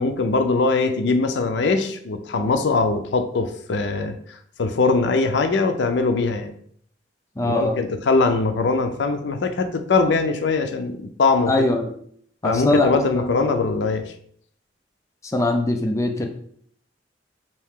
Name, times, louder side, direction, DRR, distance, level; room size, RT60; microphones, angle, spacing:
voice 1, 0.0-6.5 7.4-11.7 12.4-14.0, left 3 dB, 75° left, 7 dB, 0.5 m, -21 dB
voice 2, 7.4-7.8 11.5-11.9 12.4-12.9 13.2-13.6 15.2-16.3, left 1 dB, 15° left, 2 dB, 0.4 m, -22 dB
4.4 x 2.7 x 3.6 m, 0.63 s
head